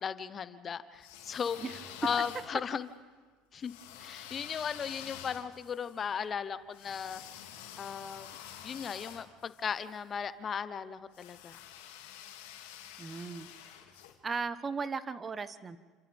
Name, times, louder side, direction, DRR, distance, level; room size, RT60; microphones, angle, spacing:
voice 1, 0.0-1.6 2.0-2.9 3.5-3.7 4.0-7.2 7.8-8.3 8.6-11.6, left 7 dB, 40° left, 13 dB, 1.0 m, -36 dB
sound 1, 0.9-2.8 3.6-10.0 11.1-14.1, left 10 dB, 85° left, 2.6 m, -48 dB
voice 2, 13.0-13.5 14.2-15.8, right 4 dB, 30° right, 13 dB, 1.2 m, -36 dB
29.5 x 27.5 x 3.6 m, 1.4 s
hypercardioid pair, 80°, 0 cm